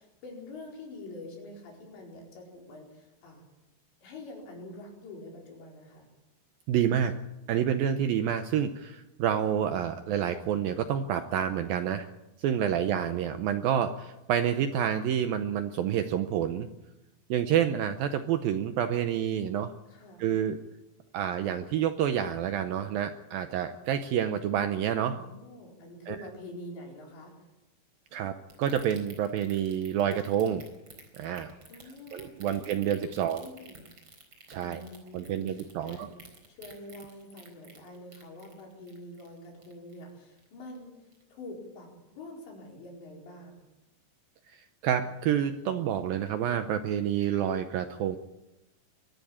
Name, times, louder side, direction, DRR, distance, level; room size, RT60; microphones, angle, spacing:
voice 1, 0.0-3.4 4.0-6.1 19.9-20.3 25.1-27.4 31.7-33.8 34.6-36.2 36.5-43.6, left 1 dB, 75° left, 0 dB, 6.8 m, -46 dB
voice 2, 6.7-7.1 7.5-12.1 12.4-16.7 17.3-19.7 20.2-20.6 21.1-25.2 26.1-26.2 28.1-30.6 31.2-31.5 32.1-33.5 34.5-34.8 35.1-36.1 44.5-44.6 44.8-48.2, right 9 dB, 80° right, 9 dB, 2.1 m, -28 dB
sound 1, 28.5-40.1 40.4-40.8 41.1-41.2, right 3 dB, 30° right, 4.6 m, -51 dB
22.5 x 14.0 x 8.7 m, 0.96 s
omnidirectional pair, 5.2 m